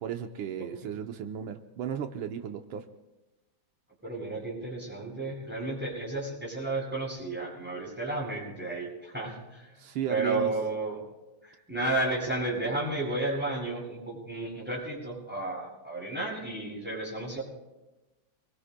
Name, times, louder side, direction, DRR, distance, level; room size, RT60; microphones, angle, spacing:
voice 1, 0.0-2.9 9.8-10.5, right 9 dB, 80° right, 5 dB, 1.6 m, -35 dB
voice 2, 0.6-0.9 4.0-9.7 10.1-11.0 11.4-17.4, right 2 dB, 5° right, -5 dB, 8.0 m, -32 dB
27.0 x 23.0 x 2.2 m, 1.1 s
omnidirectional pair, 2.2 m